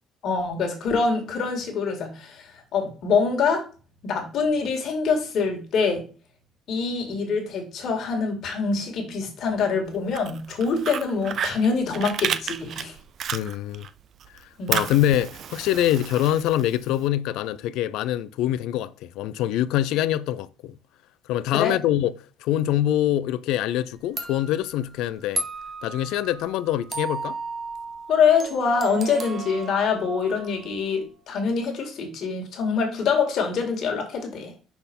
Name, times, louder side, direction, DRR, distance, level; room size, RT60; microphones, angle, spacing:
voice 1, 0.2-3.7 4.0-6.0 6.7-13.0 14.6-14.8 21.5-21.7 28.1-34.5, left 5 dB, 50° left, 2.0 m, -25 dB
Fire, 10.0-13.9 14.2-17.0, right 8 dB, 45° right, 0.4 m, -31 dB
voice 2, 13.3-13.9 14.7-20.7 21.3-22.1 22.4-25.4 25.8-27.4, left 12 dB, 80° left, 0.4 m, -24 dB
sound 1, 23.7-23.8 24.2-30.9, right 3 dB, 25° right, 0.9 m, -35 dB
5.8 x 4.2 x 5.2 m
cardioid pair, 160°, 0 cm